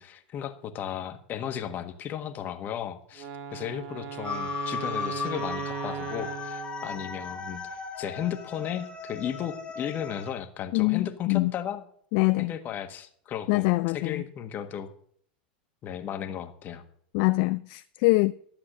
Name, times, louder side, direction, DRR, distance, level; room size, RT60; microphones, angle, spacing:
voice 1, 0.0-11.8 12.4-13.7 13.9-14.9 15.8-16.8, left 9 dB, 40° left, 1.5 m, -35 dB
Wind instrument woodwind instrument, 3.2-7.3, right 7 dB, 45° right, 1.5 m, -37 dB
sound 1, 4.2-10.3, left 5 dB, 20° left, 2.1 m, -36 dB
voice 2, 10.7-11.5 12.1-12.5 13.5-14.2 17.1-18.3, left 24 dB, 55° left, 0.4 m, -24 dB
12.5 x 7.6 x 6.4 m
hypercardioid pair, 105°, 5 cm